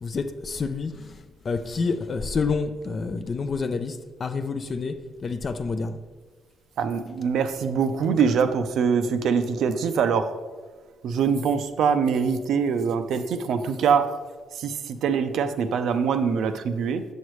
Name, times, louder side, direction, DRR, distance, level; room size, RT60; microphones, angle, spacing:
voice 1, 0.0-6.0, left 4 dB, 40° left, 0.5 m, -28 dB
voice 2, 6.8-10.3 11.0-14.2 14.5-17.1, right 6 dB, 75° right, 0.5 m, -23 dB
7.1 x 6.3 x 3.2 m
cardioid pair, 90°, 0 cm